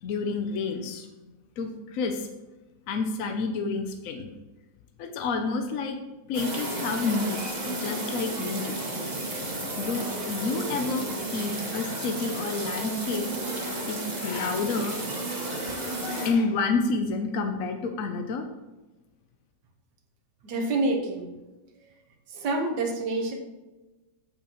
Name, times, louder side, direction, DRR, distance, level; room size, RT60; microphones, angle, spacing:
voice 1, 0.0-1.1 1.6-2.3 2.9-4.3 5.0-6.0 6.3-8.8 9.8-13.3 13.9-15.0 16.0-18.5, left 4 dB, 60° left, 5 dB, 0.9 m, -29 dB
sound 1, 6.3-16.3, right 1 dB, 25° right, 1.3 m, -33 dB
voice 2, 20.4-21.3 22.3-23.3, right 2 dB, 70° right, 1 dB, 1.8 m, -27 dB
14.5 x 5.5 x 3.0 m, 1.1 s
omnidirectional pair, 1.9 m